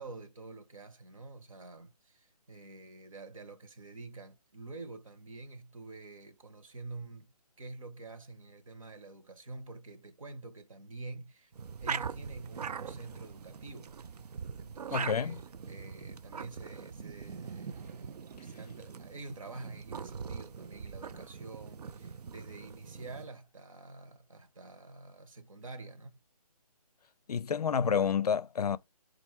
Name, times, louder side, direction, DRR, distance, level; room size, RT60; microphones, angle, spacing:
voice 1, 0.0-7.3 7.6-11.5 11.8-14.0 14.6-26.2, right 3 dB, 55° right, 0.9 m, -47 dB
sound 1, 11.5-23.3, right 6 dB, 75° right, 0.4 m, -42 dB
voice 2, 14.9-15.4 27.3-28.8, left 7 dB, 70° left, 0.4 m, -29 dB
4.2 x 2.5 x 4.3 m
hypercardioid pair, 180°, 20 cm